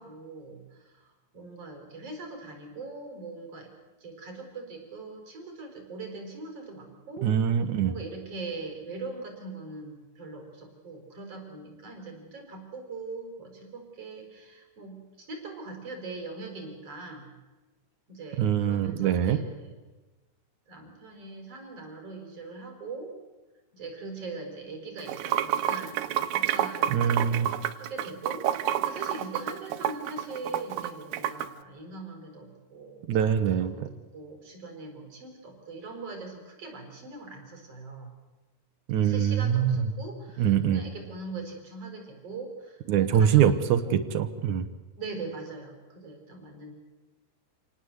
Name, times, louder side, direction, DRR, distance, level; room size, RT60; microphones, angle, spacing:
voice 1, 0.0-3.7 4.0-7.3 7.9-17.3 18.1-19.8 20.7-23.1 23.7-27.4 27.7-33.8 34.1-38.1 39.0-43.5 43.8-44.0 45.0-46.7, right 3 dB, 40° right, 3 dB, 5.8 m, -41 dB
voice 2, 7.2-7.9 18.4-19.4 26.9-27.5 33.1-33.9 38.9-39.8 40.4-40.8 42.9-44.7, right 9 dB, 65° right, 10 dB, 2.2 m, -24 dB
Water / Sink (filling or washing), 25.0-31.5, right 12 dB, 85° right, 2.9 m, -29 dB
28.0 x 19.0 x 8.0 m, 1.2 s
omnidirectional pair, 4.5 m